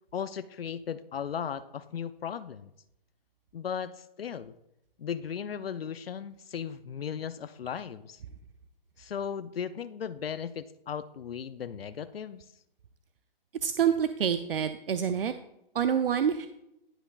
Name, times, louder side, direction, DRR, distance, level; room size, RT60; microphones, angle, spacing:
voice 1, 0.1-2.7 3.5-4.5 5.0-8.2 9.0-12.4, left 7 dB, 80° left, 13 dB, 0.6 m, -36 dB
voice 2, 13.6-15.3 15.7-16.5, right 8 dB, 70° right, 10 dB, 0.6 m, -27 dB
18.0 x 6.1 x 2.3 m, 0.84 s
hypercardioid pair, 170°, 29 cm